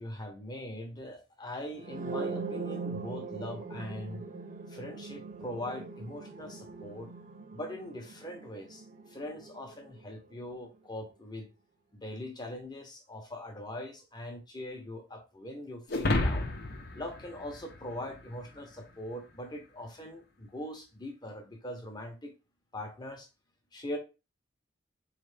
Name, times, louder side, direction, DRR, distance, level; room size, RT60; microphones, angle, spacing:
voice 1, 0.0-4.2 4.7-7.1 7.5-11.5 11.9-16.5 16.9-22.3 22.7-23.3 23.7-24.0, left 1 dB, 20° left, 1.0 m, -41 dB
sound 1, 1.8-9.6, right 4 dB, 40° right, 0.5 m, -40 dB
sound 2, 15.9-18.4, left 2 dB, 55° left, 0.8 m, -31 dB
4.2 x 3.3 x 3.3 m
head